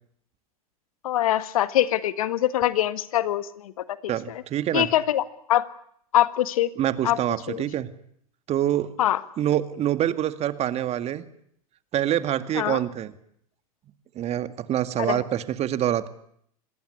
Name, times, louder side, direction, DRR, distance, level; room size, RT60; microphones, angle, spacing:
voice 1, 1.0-3.8 4.3-4.4 4.7-5.2 5.5-5.7 6.1-6.7 7.0-7.2 7.5-7.6 9.0-9.2 12.5-12.8 15.0-15.2, left 13 dB, 65° left, 14 dB, 1.6 m, -23 dB
voice 2, 4.1-4.9 6.8-7.9 8.5-8.9 9.4-11.2 11.9-13.1 14.2-16.1, right 11 dB, 35° right, 12 dB, 2.0 m, -26 dB
26.5 x 20.0 x 9.7 m, 0.69 s
figure-of-eight pair, 90°, 19 cm